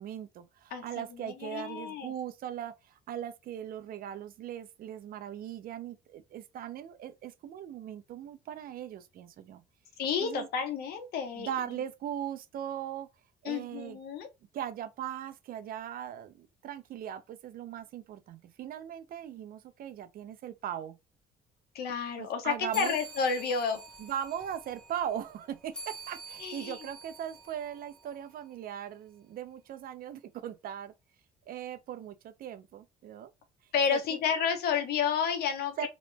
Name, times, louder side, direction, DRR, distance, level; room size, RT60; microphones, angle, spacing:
voice 1, 0.0-9.6 10.2-10.5 11.4-13.1 13.4-14.0 14.5-21.0 22.2-22.9 24.0-30.9 31.5-33.3 33.9-34.2 35.8-35.9, right 10 dB, 60° right, 0.6 m, -39 dB
voice 2, 0.7-2.1 10.0-11.5 13.4-14.3 21.7-23.8 26.4-26.8 33.7-35.9, left 6 dB, 70° left, 1.1 m, -31 dB
sound 1, 22.7-28.5, right 2 dB, 5° left, 1.8 m, -46 dB
3.0 x 3.0 x 3.3 m
cardioid pair, 110°, 17 cm